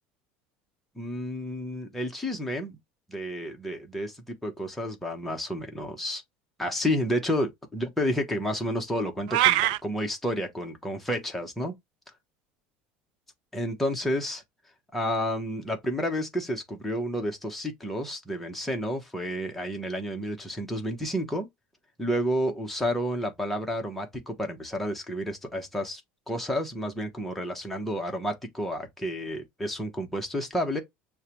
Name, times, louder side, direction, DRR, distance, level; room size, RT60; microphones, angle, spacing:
voice 1, 0.9-2.8 3.1-6.2 6.6-11.7 13.5-14.4 14.9-21.5 22.0-26.0 26.3-30.8, equal, 5° left, 0.9 m, -30 dB
sound 1, 9.3-9.8, right 15 dB, 80° right, 0.3 m, -21 dB
6.5 x 2.2 x 2.9 m
cardioid pair, 165°, 4 cm